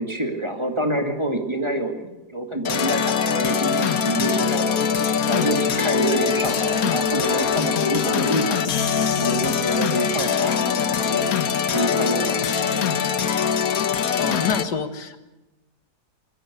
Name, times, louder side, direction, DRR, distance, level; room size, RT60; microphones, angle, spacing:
voice 1, 0.0-8.7 9.2-11.3 11.7-12.9, right 1 dB, 15° right, 4 dB, 2.2 m, -27 dB
sound 1, 2.7-14.6, left 7 dB, 60° left, 1.5 m, -22 dB
voice 2, 14.2-15.2, left 6 dB, 85° left, 10 dB, 2.1 m, -27 dB
21.5 x 15.5 x 10.0 m, 1.0 s
omnidirectional pair, 1.7 m